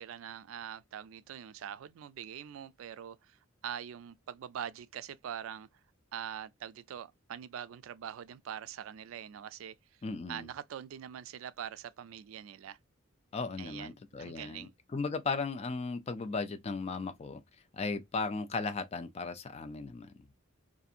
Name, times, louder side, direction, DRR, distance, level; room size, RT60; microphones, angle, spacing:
voice 1, 0.0-5.7 6.1-9.7 10.3-12.8 13.6-14.7, right 9 dB, 75° right, 0.3 m, -43 dB
voice 2, 10.0-10.5 13.3-17.4 17.7-20.1, left 4 dB, 30° left, 0.4 m, -36 dB
2.7 x 2.5 x 2.3 m
head